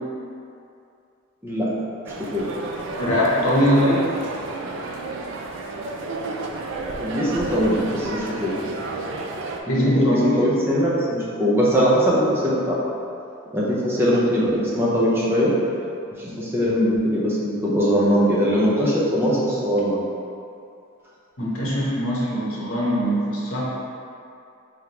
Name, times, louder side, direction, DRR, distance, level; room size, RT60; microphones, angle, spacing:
sound 1, 2.0-9.6, right 3 dB, 60° right, 0.3 m, -31 dB
voice 1, 3.0-4.1 9.6-10.4 21.4-23.6, equal, 85° left, -6 dB, 1.0 m, -21 dB
voice 2, 6.9-8.5 9.7-12.8 13.5-15.5 16.2-20.1, equal, 10° right, -7 dB, 0.6 m, -21 dB
3.6 x 3.4 x 2.9 m, 2.6 s
head